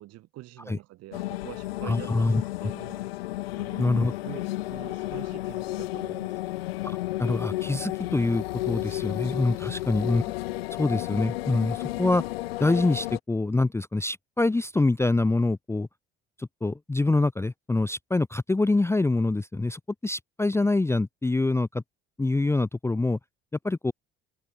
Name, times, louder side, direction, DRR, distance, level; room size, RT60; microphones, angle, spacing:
voice 1, 0.0-3.0 3.6-6.6 9.7-10.1, right 16 dB, 55° right, 2.7 m, -45 dB
sound 1, 1.1-13.2, left 17 dB, 70° left, 1.3 m, -32 dB
voice 2, 1.8-2.4 3.8-4.1 6.8-10.2 10.8-12.2 12.6-15.9 16.4-21.8 22.2-23.2 23.6-23.9, left 2 dB, 10° left, 0.7 m, -25 dB
figure-of-eight pair, 60°, 31 cm